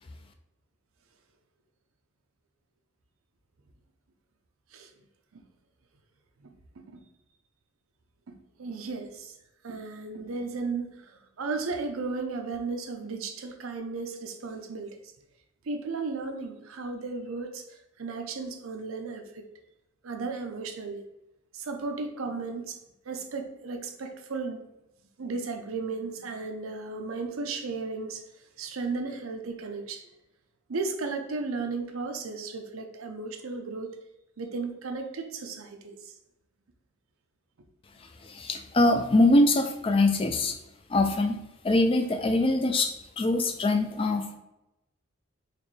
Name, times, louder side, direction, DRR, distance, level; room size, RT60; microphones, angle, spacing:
voice 1, 6.4-7.0 8.3-9.4 9.6-15.0 15.6-19.4 20.0-21.0 21.5-22.8 23.1-24.6 25.2-28.2 28.6-30.1 30.7-33.9 34.4-36.1 41.1-41.2, right 4 dB, 80° right, 5 dB, 0.6 m, -35 dB
voice 2, 38.2-40.6 40.9-41.4 41.6-44.3, left 2 dB, 25° left, 6 dB, 0.3 m, -23 dB
4.2 x 3.1 x 3.1 m, 0.92 s
head